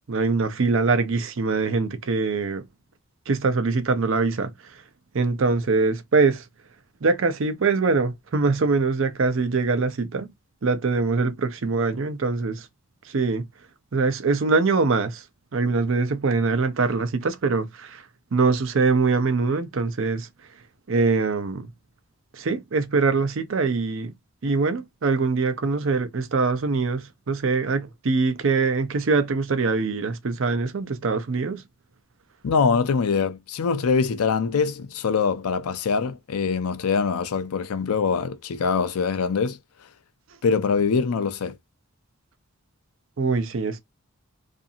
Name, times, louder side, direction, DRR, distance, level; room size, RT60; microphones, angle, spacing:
voice 1, 0.1-2.6 3.3-4.5 5.1-6.4 7.0-10.3 10.6-12.7 13.1-13.4 13.9-15.2 15.5-18.0 18.3-20.3 20.9-21.7 22.3-24.1 24.4-31.6 43.2-43.8, right 4 dB, 60° right, 0.5 m, -23 dB
voice 2, 32.4-39.6 40.4-41.5, left 5 dB, 85° left, 0.4 m, -23 dB
2.7 x 2.5 x 2.5 m
head